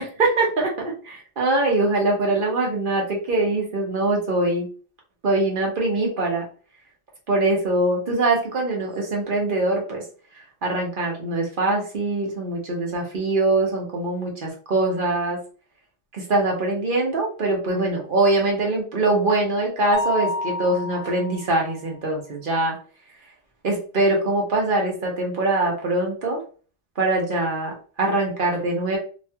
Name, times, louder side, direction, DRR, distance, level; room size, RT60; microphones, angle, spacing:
voice 1, 0.0-4.7 5.2-6.4 7.3-10.0 10.6-15.4 16.1-22.7 23.6-26.4 27.0-29.0, right 2 dB, 55° right, -1 dB, 1.1 m, -23 dB
Mallet percussion, 19.9-21.7, left 2 dB, 30° right, 0.4 m, -29 dB
3.0 x 2.2 x 2.7 m, 0.39 s
omnidirectional pair, 1.1 m